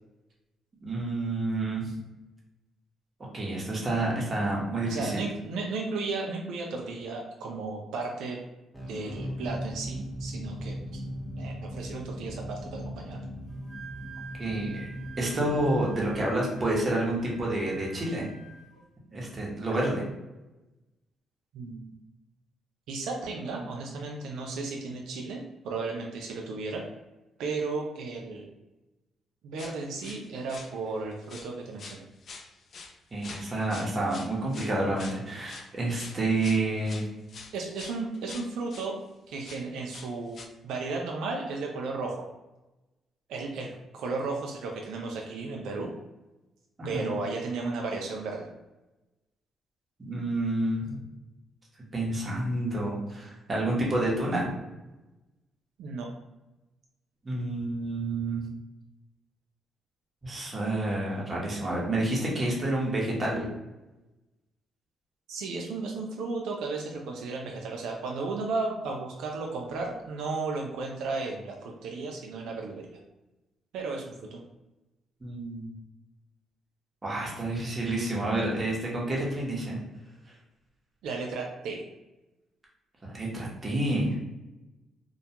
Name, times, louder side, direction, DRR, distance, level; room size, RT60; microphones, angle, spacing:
voice 1, 0.8-1.9 3.3-5.2 14.4-14.9 15.2-18.2 19.1-20.0 33.1-37.0 46.8-47.1 50.1-51.0 51.9-54.5 57.2-58.4 60.2-63.5 75.2-75.7 77.0-79.8 83.0-84.1, right 2 dB, 30° right, -3 dB, 0.8 m, -29 dB
voice 2, 4.8-8.4 8.8-10.8 11.4-13.2 21.5-21.9 22.9-26.8 27.4-28.5 29.4-32.0 37.5-39.0 39.3-40.4 40.6-42.2 43.3-45.9 46.8-48.5 55.8-56.1 65.3-73.0 73.7-74.4 81.0-81.8, right 3 dB, 85° right, 0 dB, 0.3 m, -34 dB
sound 1, 8.7-17.4, equal, 10° left, 0.8 m, -39 dB
Wind instrument woodwind instrument, 13.5-18.8, right 7 dB, 80° left, 0.8 m, -48 dB
sound 2, 29.6-31.0 31.2-31.5 31.8-38.9 39.4-40.5, left 4 dB, 55° left, 0.3 m, -46 dB
2.3 x 2.1 x 2.8 m, 1.0 s
cardioid pair, 90°, 0 cm